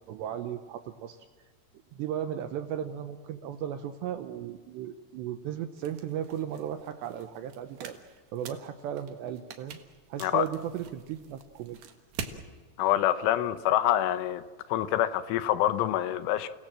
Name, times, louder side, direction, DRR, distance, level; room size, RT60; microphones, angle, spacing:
voice 1, 0.1-1.2 1.9-8.0 8.3-9.8 10.1-11.8, right 10 dB, 80° right, 2.6 m, -36 dB
sound 1, 5.8-12.4, right 6 dB, 60° right, 2.8 m, -45 dB
voice 2, 12.8-14.4 14.7-16.5, left 12 dB, 80° left, 3.1 m, -26 dB
30.0 x 18.0 x 7.5 m
omnidirectional pair, 5.8 m